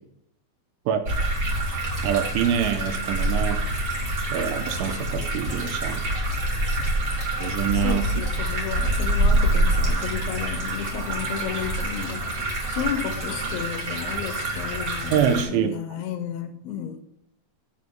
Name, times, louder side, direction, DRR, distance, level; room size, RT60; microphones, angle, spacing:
sound 1, 1.0-15.4, right 1 dB, 40° right, 1.7 m, -26 dB
voice 1, 2.0-3.6 4.3-6.0 7.4-8.0 15.1-15.7, right 8 dB, 80° right, 3.0 m, -25 dB
voice 2, 7.7-17.0, left 9 dB, 80° left, 3.0 m, -33 dB
sound 2, 10.1-12.2, left 1 dB, 55° right, 2.4 m, -43 dB
8.1 x 7.1 x 7.0 m
omnidirectional pair, 5.8 m